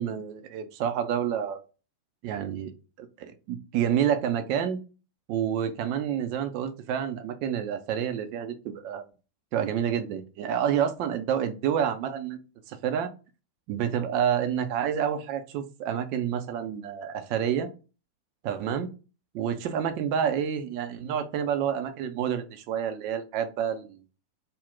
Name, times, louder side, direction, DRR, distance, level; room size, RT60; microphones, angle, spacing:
voice 1, 0.0-1.6 2.2-2.7 3.0-4.8 5.3-9.0 9.5-12.4 12.7-13.1 13.7-17.7 18.4-18.9 19.3-24.0, right 9 dB, 45° right, 9 dB, 0.4 m, -28 dB
2.5 x 2.1 x 3.5 m, 0.33 s
figure-of-eight pair, 90°, 0 cm